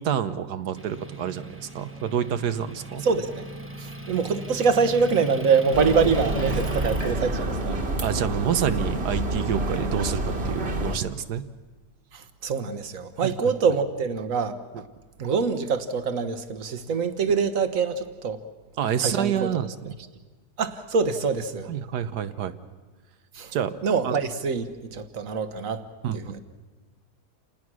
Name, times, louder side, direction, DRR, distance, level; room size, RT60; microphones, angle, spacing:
voice 1, 0.0-3.0 8.0-11.4 13.2-13.3 14.7-14.8 18.8-19.9 21.7-22.5 23.5-23.7 24.0-24.2 26.0-26.4, right 9 dB, 80° right, 11 dB, 1.5 m, -28 dB
Motor vehicle (road) / Engine, 0.8-7.1, right 2 dB, 10° right, 1.1 m, -37 dB
voice 2, 3.0-3.5 3.8-7.8 12.1-14.5 15.2-18.4 19.0-19.3 20.6-21.7 23.3-23.5 23.8-24.7 24.9-25.8 26.1-26.4, right 5 dB, 60° right, 10 dB, 1.5 m, -24 dB
sound 1, 5.7-11.0, right 1 dB, 40° right, 1.8 m, -28 dB
28.0 x 19.5 x 6.2 m, 1.3 s
omnidirectional pair, 1.7 m